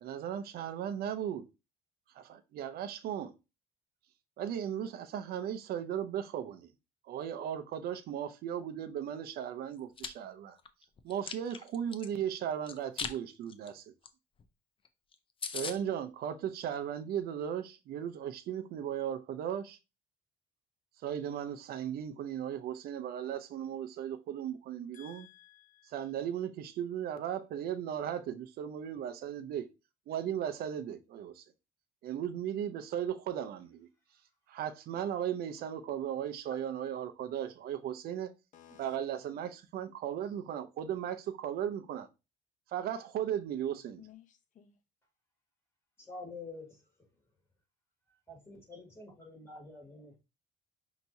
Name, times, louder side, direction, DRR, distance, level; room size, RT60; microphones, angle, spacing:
voice 1, 0.0-1.5 2.1-3.3 4.4-6.7 7.0-10.6 11.0-13.9 15.5-19.8 21.0-25.3 25.8-29.7 30.1-31.4 32.0-33.9 34.5-38.3 38.8-42.1 42.7-44.0, right 9 dB, 65° right, 0.6 m, -36 dB
Chewing mastication, 9.7-10.1 10.6-12.1 12.7-13.2 13.5-13.7 14.0-14.1 14.4-14.5 14.8-14.9 15.1-15.2 15.4-15.8, left 6 dB, 30° left, 0.5 m, -39 dB
voice 2, 24.9-25.9 38.5-39.0 44.0-44.8, left 11 dB, 50° left, 0.9 m, -56 dB
voice 3, 46.0-46.8 48.3-50.2, left 3 dB, 15° left, 2.5 m, -47 dB
5.6 x 2.9 x 2.7 m
cardioid pair, 110°, 17 cm